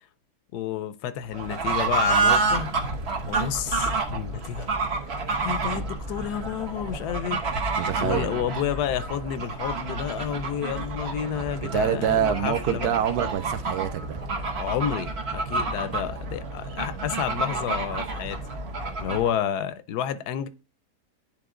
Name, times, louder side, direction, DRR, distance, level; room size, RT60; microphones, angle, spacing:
voice 1, 0.5-2.7 3.3-4.7 5.4-7.6 8.0-13.0 14.6-18.4 19.0-20.5, left 10 dB, 85° left, 1.2 m, -30 dB
Fowl / Bird, 1.3-19.4, right 3 dB, 45° right, 1.1 m, -29 dB
voice 2, 7.8-8.4 11.7-14.2, right 9 dB, 80° right, 1.3 m, -26 dB
10.0 x 3.6 x 3.7 m
omnidirectional pair, 1.7 m